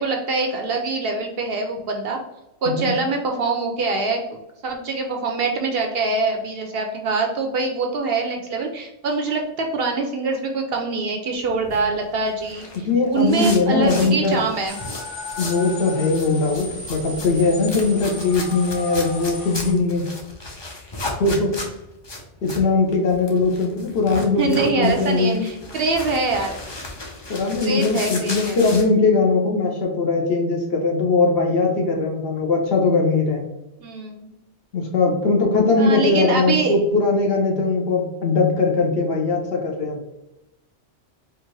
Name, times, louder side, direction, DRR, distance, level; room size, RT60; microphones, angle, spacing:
voice 1, 0.0-2.2 2.6-4.2 4.6-14.8 24.4-26.5 27.6-28.6 33.8-34.3 35.8-36.8, right 3 dB, 60° right, 3 dB, 0.7 m, -24 dB
sound 1, 11.4-15.7 16.0-28.8, left 2 dB, 30° left, 0.5 m, -34 dB
voice 2, 12.8-14.4 15.4-20.1 21.2-21.5 22.4-25.5 27.3-33.4 34.7-40.0, left 3 dB, 55° left, 0 dB, 1.0 m, -20 dB
sound 2, 14.7-19.7, left 2 dB, 85° left, 1.8 m, -35 dB
4.6 x 2.5 x 3.2 m, 0.93 s
omnidirectional pair, 1.2 m